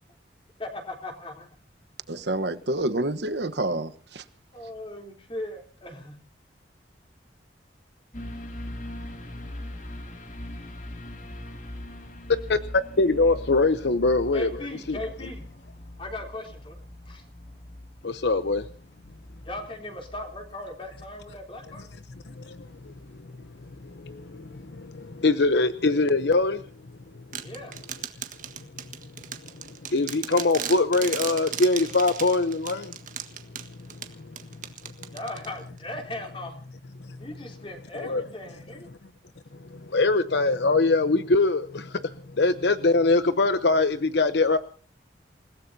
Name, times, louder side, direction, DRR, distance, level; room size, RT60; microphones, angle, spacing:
voice 1, 0.6-1.5 4.5-6.2 14.3-15.5 16.0-16.8 17.0-17.2 19.4-21.8 27.4-27.8 35.1-36.6 37.2-38.9, left 1 dB, 30° left, 3.5 m, -38 dB
voice 2, 2.1-4.2, right 2 dB, 70° right, 1.2 m, -28 dB
sound 1, 8.1-25.9 26.3-26.4, left 1 dB, 45° left, 2.8 m, -42 dB
voice 3, 12.5-14.5 14.9-15.0 18.0-18.7 22.3-22.9 23.8-26.6 29.7-32.9 38.0-38.2 39.7-42.1 42.4-44.6, left 3 dB, 70° left, 0.8 m, -23 dB
sound 2, 27.3-35.8, right 9 dB, 45° right, 1.6 m, -37 dB
28.5 x 17.0 x 2.8 m
head